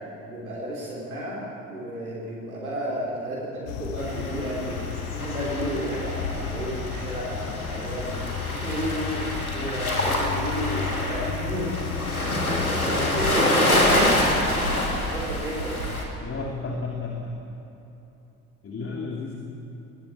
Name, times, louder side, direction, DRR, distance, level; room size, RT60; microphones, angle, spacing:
voice 1, 0.2-1.4 1.7-4.8 5.1-8.2 8.5-11.9 12.2-14.1 14.5-16.0, right 1 dB, 80° right, -5 dB, 3.5 m, -32 dB
sound 1, 3.7-13.3, left 8 dB, 65° left, 1.2 m, -33 dB
sound 2, 4.0-16.0, left 1 dB, 90° left, 2.4 m, -27 dB
voice 2, 16.2-17.4 18.6-19.3, left 3 dB, 30° left, 0 dB, 2.8 m, -32 dB
21.5 x 14.5 x 8.5 m, 3.0 s
figure-of-eight pair, 50°, 42 cm